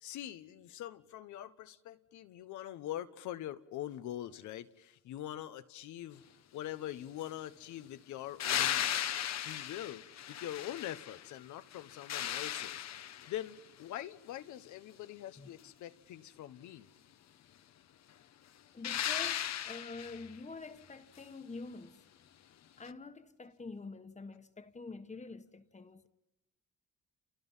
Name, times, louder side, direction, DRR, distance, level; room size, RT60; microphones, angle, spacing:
voice 1, 0.0-6.2 6.5-8.9 9.4-10.0 10.3-16.9, left 12 dB, 90° left, 1.2 m, -43 dB
sound 1, 8.4-11.3 11.7-13.5 18.8-20.3 22.9-23.0, left 10 dB, 65° left, 1.0 m, -36 dB
voice 2, 18.7-22.0 22.8-26.1, left 3 dB, 25° left, 1.4 m, -47 dB
29.5 x 29.0 x 5.7 m
cardioid pair, 90°, 29 cm